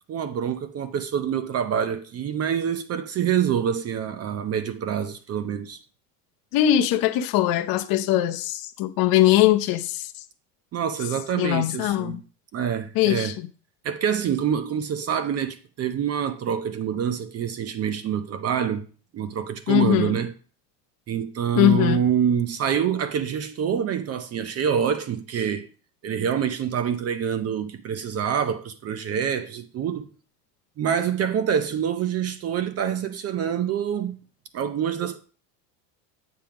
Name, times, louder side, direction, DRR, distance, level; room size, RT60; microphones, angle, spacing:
voice 1, 0.1-5.8 10.7-12.2 12.5-13.4 13.8-18.9 19.1-20.3 21.1-25.7 26.0-30.1 30.8-34.2 34.5-35.2, right 8 dB, 30° right, 0.6 m, -26 dB
voice 2, 6.5-10.1 11.4-12.2 13.0-13.3 19.7-20.1 21.6-22.0, left 13 dB, 45° left, 0.8 m, -21 dB
7.7 x 3.4 x 5.8 m
supercardioid pair, 110°, 49 cm